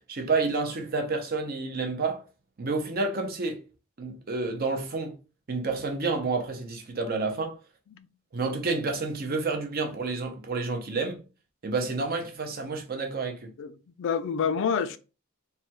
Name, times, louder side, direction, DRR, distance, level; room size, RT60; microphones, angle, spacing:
voice 1, 0.0-2.2 2.6-3.6 4.0-5.2 5.5-7.6 8.3-11.2 11.6-13.5, right 3 dB, 45° right, 0.6 m, -29 dB
voice 2, 14.0-15.0, left 6 dB, 60° left, 0.3 m, -27 dB
3.2 x 2.2 x 2.8 m
head